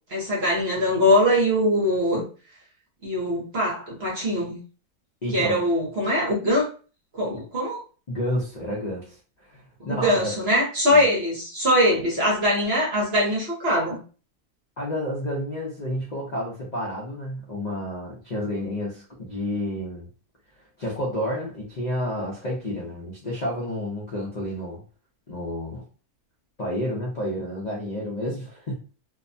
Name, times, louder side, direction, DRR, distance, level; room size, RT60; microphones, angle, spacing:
voice 1, 0.1-2.2 3.0-4.6 5.3-6.7 7.1-7.8 9.9-14.0, equal, 45° right, -3 dB, 1.0 m, -22 dB
voice 2, 5.2-5.6 7.3-7.4 8.1-9.1 9.5-10.3 10.9-11.1 14.8-20.1 20.8-24.8 25.3-25.8 26.6-28.7, left 1 dB, 50° left, -4 dB, 0.5 m, -30 dB
2.7 x 2.2 x 2.6 m, 0.37 s
omnidirectional pair, 1.6 m